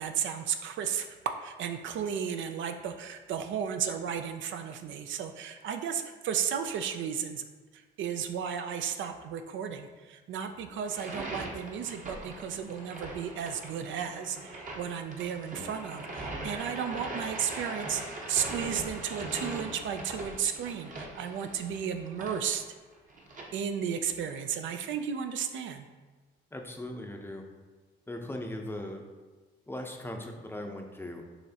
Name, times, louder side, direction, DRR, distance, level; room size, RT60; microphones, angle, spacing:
voice 1, 0.0-7.4 7.7-22.6 23.5-25.9, right 8 dB, 75° right, 7 dB, 0.4 m, -34 dB
sound 1, 10.8-23.4, right 2 dB, 40° right, 0.9 m, -40 dB
voice 2, 26.5-27.4 28.1-29.0 29.7-31.2, left 1 dB, 10° left, 3 dB, 0.5 m, -39 dB
5.5 x 3.1 x 2.8 m, 1.3 s
cardioid pair, 90°, 20 cm